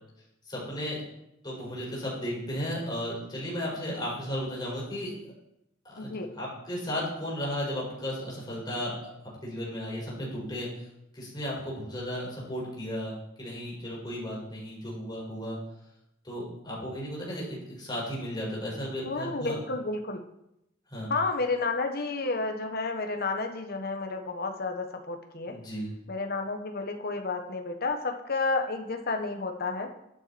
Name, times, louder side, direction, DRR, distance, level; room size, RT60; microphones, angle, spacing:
voice 1, 0.4-1.0 1.4-5.1 5.8-8.9 9.4-10.7 11.1-15.6 16.2-19.6 20.9-21.1 25.5-25.9, equal, 20° left, -5 dB, 5.1 m, -34 dB
voice 2, 6.0-6.3 19.0-20.2 21.1-25.5 26.1-29.9, left 3 dB, 50° left, 4 dB, 1.3 m, -31 dB
11.5 x 9.3 x 4.3 m, 0.83 s
head